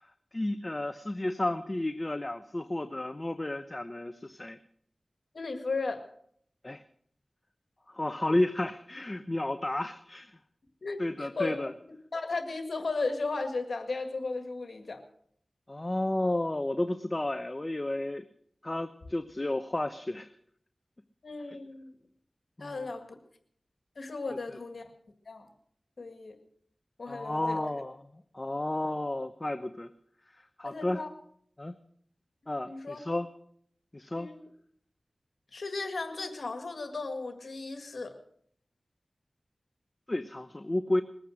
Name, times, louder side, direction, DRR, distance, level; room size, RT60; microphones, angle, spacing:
voice 1, 0.0-4.6 6.6-6.8 7.9-10.4 11.0-11.7 15.7-18.3 18.6-20.3 22.6-22.9 24.3-24.6 27.1-28.1 28.3-29.9 30.3-31.0 31.6-31.7 32.5-33.3 33.9-34.3 40.1-41.0, left 1 dB, 35° left, 9 dB, 0.8 m, -32 dB
voice 2, 5.3-6.0 10.8-11.7 12.1-15.0 21.2-21.9 22.6-23.1 24.0-24.8 25.3-25.5 26.0-26.4 27.0-27.6 30.7-31.1 32.7-33.0 34.1-34.4 35.5-38.1, left 3 dB, 80° left, 6 dB, 1.9 m, -35 dB
21.0 x 9.1 x 6.3 m, 0.64 s
cardioid pair, 40°, 0 cm